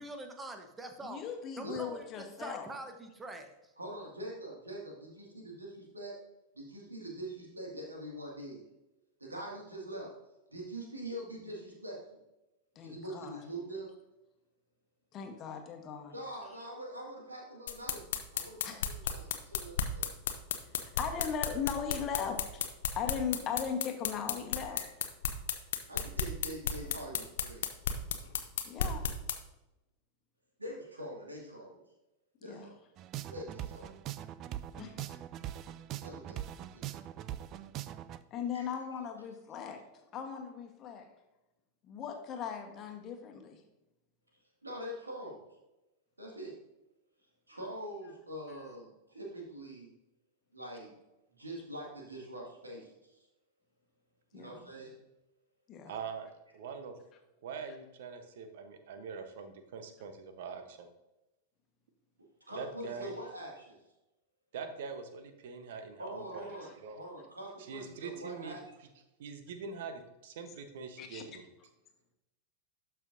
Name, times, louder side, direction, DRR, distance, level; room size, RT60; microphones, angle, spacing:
voice 1, 0.0-1.3 1.6-3.7, right 2 dB, 15° right, 6 dB, 1.0 m, -45 dB
voice 2, 1.0-2.7 12.7-13.4 15.1-16.2 18.6-18.8 20.8-22.7 22.9-24.8 28.6-29.1 32.4-32.7 34.8-35.1 38.3-39.8 40.1-41.1 41.8-43.6 54.3-54.6 55.7-55.9 71.0-71.3, left 7 dB, 30° left, 4 dB, 1.2 m, -38 dB
voice 3, 3.8-6.2 6.5-8.6 9.2-10.1 10.5-12.2 12.8-13.9 16.1-18.0 18.3-20.1 24.7-24.8 25.9-27.6 30.6-31.8 32.4-32.8 33.3-34.0 36.0-37.1 38.5-38.7 44.6-45.5 46.2-46.5 47.5-49.9 50.5-50.9 51.4-53.2 54.3-55.0 62.5-63.8 66.0-68.6, right 1 dB, 80° right, -1 dB, 2.1 m, -44 dB
sound 1, 17.7-29.4, left 8 dB, 60° left, 0.7 m, -33 dB
sound 2, 33.0-38.2, right 12 dB, 35° right, 0.3 m, -41 dB
voice 4, 55.9-56.9 57.4-60.9 62.5-63.1 64.5-67.0 67.6-68.9 69.2-71.5, right 5 dB, 55° right, 8 dB, 0.9 m, -43 dB
12.0 x 5.6 x 2.6 m, 0.96 s
figure-of-eight pair, 90°, 0 cm